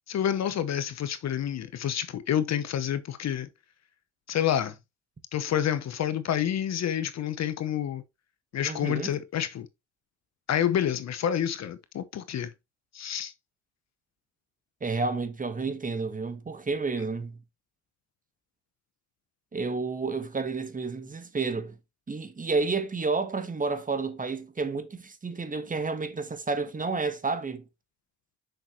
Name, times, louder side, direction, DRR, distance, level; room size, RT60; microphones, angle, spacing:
voice 1, 0.1-3.5 4.3-4.8 5.3-8.0 8.5-9.7 10.5-12.5 12.9-13.3, left 10 dB, 50° left, 0.8 m, -28 dB
voice 2, 8.6-9.1 14.8-17.4 19.5-21.8 22.1-27.6, right 4 dB, 25° right, 1.3 m, -30 dB
6.8 x 5.8 x 3.0 m
supercardioid pair, 75°, 35 cm